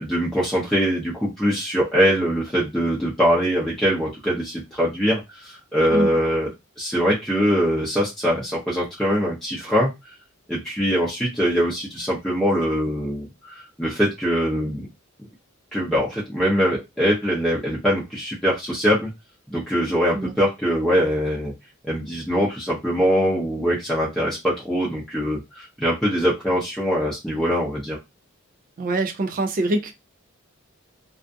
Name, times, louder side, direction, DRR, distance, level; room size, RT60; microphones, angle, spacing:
voice 1, 0.0-6.5 6.8-9.9 10.5-14.9 15.7-19.1 19.5-21.5 21.9-28.0, equal, ahead, 0.6 m, -22 dB
voice 2, 28.8-29.9, right 2 dB, 40° right, 0.4 m, -24 dB
2.4 x 2.3 x 2.5 m
head